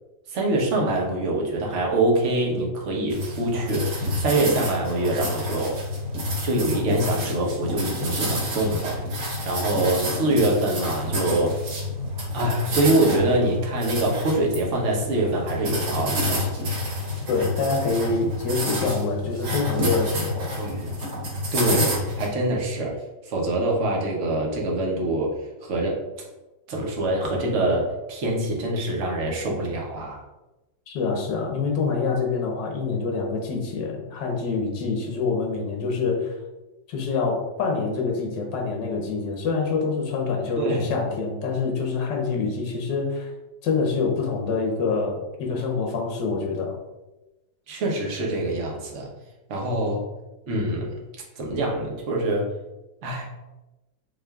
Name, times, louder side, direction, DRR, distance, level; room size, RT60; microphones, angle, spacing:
voice 1, 0.3-5.8 6.4-9.0 9.4-11.6 12.3-16.5 20.6-21.0 21.5-23.0 23.2-26.0 26.7-30.2 40.6-40.9 47.7-49.1 49.5-50.0 50.5-50.9 51.4-52.5 53.0-53.3, right 2 dB, 50° right, -1 dB, 1.0 m, -24 dB
sound 1, 3.1-22.3, left 1 dB, 70° right, 1.7 m, -28 dB
voice 2, 17.3-20.5 30.9-36.3 36.9-43.3 43.6-46.8, left 4 dB, 80° left, 1 dB, 1.5 m, -26 dB
6.3 x 2.5 x 2.3 m, 1.0 s
omnidirectional pair, 1.9 m